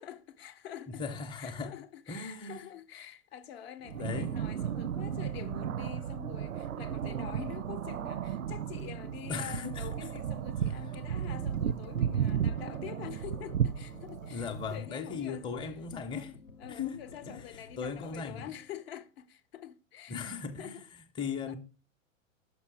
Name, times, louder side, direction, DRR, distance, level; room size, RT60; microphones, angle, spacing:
voice 1, 0.0-15.5 16.1-20.2 20.6-20.8 21.5-21.6, left 10 dB, 50° left, 0.8 m, -46 dB
voice 2, 0.9-1.7 2.1-2.6 3.8-4.3 9.3-9.9 14.3-16.3 16.7-17.0 17.3-17.4 17.8-18.5 20.1-20.8 21.2-21.6, left 5 dB, 10° left, 0.7 m, -37 dB
sound 1, 3.8-14.8, right 9 dB, 80° right, 0.5 m, -34 dB
sound 2, 10.8-18.8, left 4 dB, 85° left, 0.8 m, -53 dB
6.0 x 5.6 x 4.6 m
figure-of-eight pair, 95°, 40 cm